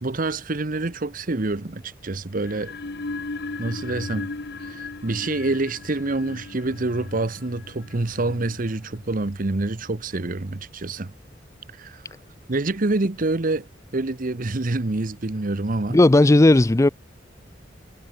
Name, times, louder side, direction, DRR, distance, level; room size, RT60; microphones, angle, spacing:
voice 1, 0.0-2.7 3.6-4.3 4.6-11.1 11.7-12.1 12.5-13.7 13.9-16.0, right 2 dB, 50° right, 0.9 m, -27 dB
sound 1, 2.4-9.3, left 3 dB, 65° left, 1.2 m, -36 dB
voice 2, 15.9-16.9, left 2 dB, 15° left, 0.4 m, -14 dB
head